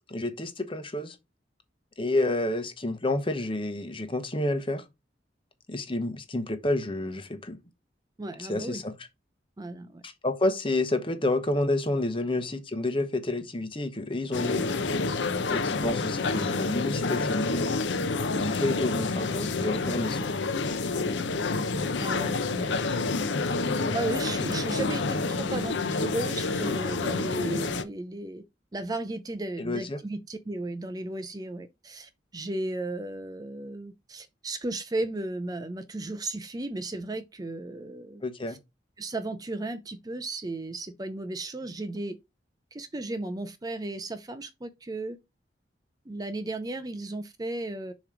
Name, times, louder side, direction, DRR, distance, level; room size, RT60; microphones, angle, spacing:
voice 1, 0.1-1.2 2.0-4.8 5.7-7.6 8.4-8.9 10.0-14.6 15.5-17.6 18.4-20.3 23.8-24.0 29.6-30.0 38.2-38.6, left 2 dB, 30° left, 1.0 m, -29 dB
voice 2, 8.2-8.8 9.6-10.0 22.0-22.8 23.9-28.4 28.7-38.2 38.5-38.6 39.0-42.2 42.7-45.2 46.1-47.9, right 2 dB, 20° right, 0.5 m, -35 dB
sound 1, 14.3-27.8, left 3 dB, 85° left, 0.7 m, -28 dB
7.0 x 3.1 x 5.0 m
head